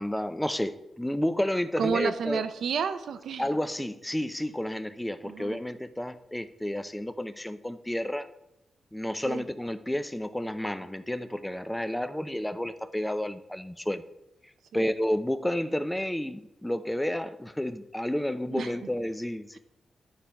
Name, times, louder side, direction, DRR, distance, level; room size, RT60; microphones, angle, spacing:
voice 1, 0.0-2.4 3.4-8.3 8.9-14.0 14.7-19.6, left 1 dB, 5° left, 11 dB, 0.5 m, -31 dB
voice 2, 1.8-3.5 5.2-5.6 9.3-9.4 14.7-14.9 18.5-18.7, right 6 dB, 80° right, 11 dB, 0.6 m, -31 dB
10.0 x 4.4 x 5.2 m, 0.90 s
cardioid pair, 85°, 0 cm